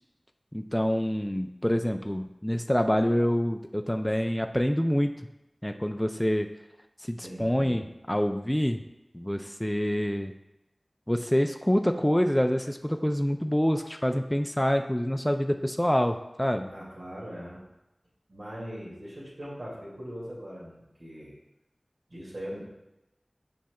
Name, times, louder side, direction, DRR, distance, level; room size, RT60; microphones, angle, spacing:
voice 1, 0.5-5.2 5.6-6.5 7.1-8.8 9.1-10.3 11.1-16.7, equal, 10° left, 5 dB, 0.4 m, -26 dB
voice 2, 7.2-7.8 16.7-17.6 18.3-21.3 22.1-22.7, equal, 85° right, -7 dB, 2.2 m, -40 dB
10.0 x 5.5 x 2.3 m, 0.94 s
wide cardioid pair, 40°, 0 cm